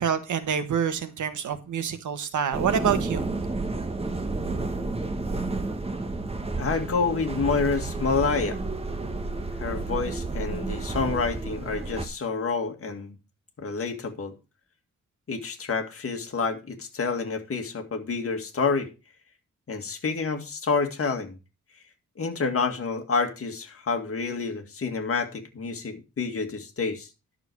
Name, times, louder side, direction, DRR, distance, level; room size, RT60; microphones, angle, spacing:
voice 1, 0.0-3.2, right 7 dB, 85° right, 1.4 m, -27 dB
sound 1, 2.5-12.0, right 3 dB, 20° right, 1.2 m, -31 dB
voice 2, 6.6-8.6 9.6-13.2 13.6-14.3 15.3-18.9 19.7-21.4 22.2-27.1, left 4 dB, 50° left, 2.1 m, -28 dB
11.0 x 6.8 x 4.7 m
wide cardioid pair, 130°, 29 cm